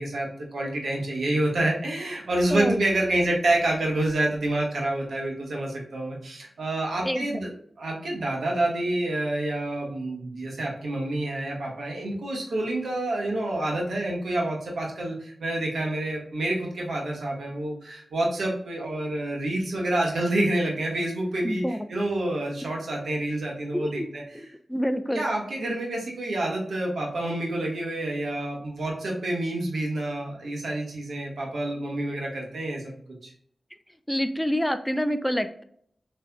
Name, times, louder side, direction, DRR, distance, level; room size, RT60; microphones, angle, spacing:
voice 1, 0.0-7.5 7.8-24.5 25.1-32.9 33.2-33.3, right 1 dB, 85° right, -2 dB, 1.4 m, -28 dB
voice 2, 21.4-21.8 23.8-24.1 24.7-25.2 34.1-35.6, equal, 5° left, 10 dB, 0.4 m, -26 dB
6.6 x 3.3 x 2.3 m, 0.65 s
cardioid pair, 55°, 0 cm